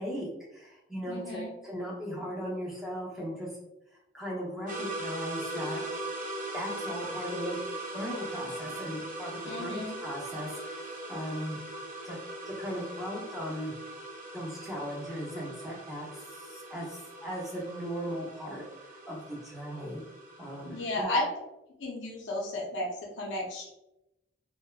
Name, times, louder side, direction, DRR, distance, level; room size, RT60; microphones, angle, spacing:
voice 1, 0.0-3.5 4.1-5.8 6.5-7.7 7.9-11.6 12.0-12.2 12.5-13.7 14.3-20.0 20.4-21.2, equal, ahead, -5 dB, 0.6 m, -38 dB
voice 2, 1.1-1.5 9.5-10.0 20.7-21.3 21.8-23.7, left 1 dB, 75° left, -1 dB, 0.6 m, -33 dB
sound 1, 4.7-21.0, right 1 dB, 45° right, 0.5 m, -40 dB
2.6 x 2.1 x 2.2 m, 0.90 s
head